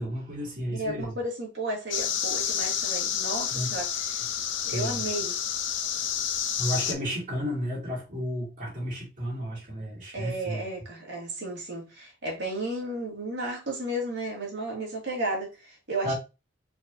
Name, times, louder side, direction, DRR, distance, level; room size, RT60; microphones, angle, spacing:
voice 1, 0.0-1.1 3.5-3.7 4.7-5.0 6.6-10.6 16.0-16.1, equal, 40° right, 2.6 m, -32 dB
voice 2, 0.7-4.2 4.7-5.4 10.1-16.1, right 1 dB, 60° right, 2.2 m, -33 dB
sound 1, 1.9-6.9, left 8 dB, 65° left, 0.6 m, -29 dB
5.0 x 3.7 x 2.7 m
head